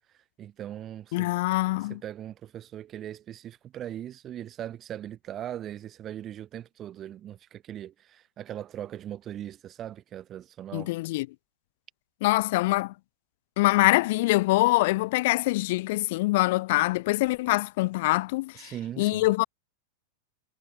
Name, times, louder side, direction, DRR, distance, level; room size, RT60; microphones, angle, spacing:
voice 1, 0.1-1.3 1.7-10.9 18.5-19.3, right 11 dB, 30° right, 5.0 m, -40 dB
voice 2, 1.1-2.0 10.7-11.3 12.2-12.9 13.6-18.7 19.0-19.4, left 20 dB, 60° left, 1.8 m, -24 dB
hypercardioid pair, 125°, 0 cm